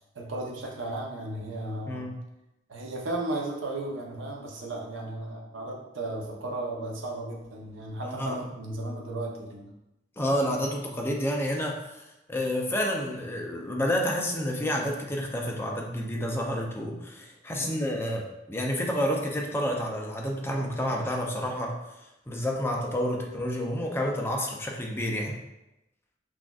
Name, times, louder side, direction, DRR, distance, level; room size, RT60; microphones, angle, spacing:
voice 1, 0.1-2.1 2.7-9.7 17.6-17.9 23.0-23.2, right 2 dB, 85° right, -1 dB, 0.8 m, -35 dB
voice 2, 1.9-2.2 8.0-8.4 10.2-25.4, equal, 10° left, 0 dB, 0.5 m, -29 dB
5.9 x 2.5 x 2.3 m, 0.92 s
head